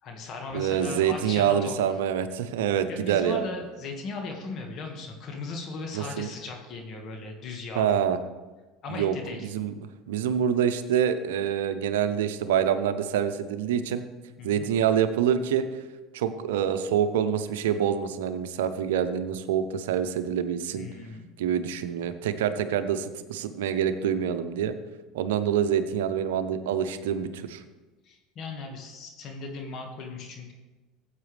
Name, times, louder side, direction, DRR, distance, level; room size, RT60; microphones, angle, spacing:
voice 1, 0.0-2.0 2.9-8.0 8.8-9.5 14.4-14.7 20.7-21.3 28.0-30.5, left 3 dB, 50° left, 2 dB, 1.8 m, -38 dB
voice 2, 0.5-3.5 5.9-6.3 7.8-8.2 8.9-9.1 9.4-9.7 10.1-14.0 14.4-15.6 16.1-20.8 21.4-24.7 25.1-27.6, right 9 dB, 80° right, 11 dB, 0.7 m, -26 dB
14.5 x 8.2 x 3.4 m, 1.2 s
hypercardioid pair, 85°, 0 cm